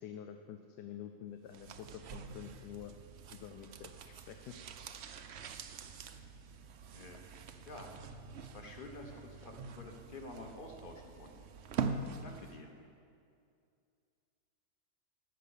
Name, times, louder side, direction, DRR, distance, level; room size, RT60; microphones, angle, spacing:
voice 1, 0.0-2.9 3.3-4.6, left 9 dB, 80° left, 6 dB, 1.2 m, -48 dB
sound 1, 1.5-12.7 13.0-13.1, right 5 dB, 65° right, 0.6 m, -44 dB
voice 2, 8.4-11.3 12.2-12.7, left 2 dB, 35° left, 3 dB, 1.3 m, -49 dB
14.0 x 6.0 x 8.3 m, 2.4 s
omnidirectional pair, 1.8 m